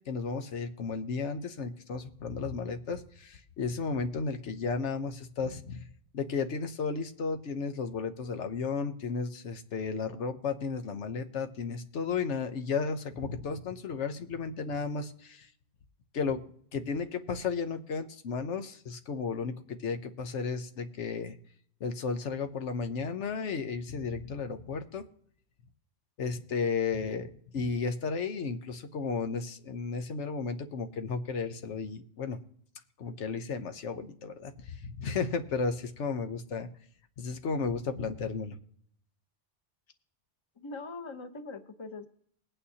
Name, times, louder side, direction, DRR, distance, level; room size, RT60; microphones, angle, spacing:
voice 1, 0.1-5.9 6.1-15.5 16.1-16.4 16.7-21.4 21.8-25.0 26.2-32.4 33.0-36.7 37.2-38.6, left 5 dB, 90° left, 8 dB, 1.2 m, -34 dB
voice 2, 40.6-42.1, left 3 dB, 25° left, 6 dB, 0.9 m, -42 dB
20.5 x 9.0 x 2.8 m, 0.63 s
omnidirectional pair, 1.2 m